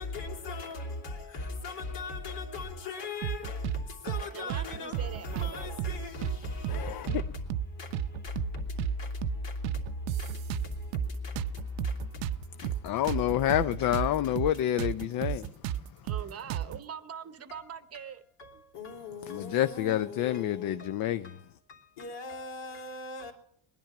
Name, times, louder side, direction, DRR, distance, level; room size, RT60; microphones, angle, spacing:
voice 1, 0.1-0.8 1.6-2.2 2.5-3.4 4.0-4.9 5.4-5.5 5.8-5.9 18.8-18.9 20.2-20.4 22.0-23.3, left 4 dB, 65° left, 3.1 m, -38 dB
sound 1, 3.2-3.8 4.1-4.2 4.5-5.5 5.8-5.9 6.2-7.2 7.5-7.7 7.9-8.9 9.2-9.4 9.6-11.1 11.4-14.1 14.4-14.5 14.8-16.8, right 11 dB, 70° right, 0.7 m, -32 dB
voice 2, 4.3-5.8 16.0-18.2 18.5-18.6, right 8 dB, 30° right, 0.9 m, -42 dB
voice 3, 6.7-7.2 12.8-15.5 19.3-21.3, left 12 dB, 50° left, 0.6 m, -28 dB
20.0 x 10.5 x 5.9 m
supercardioid pair, 105°, 46 cm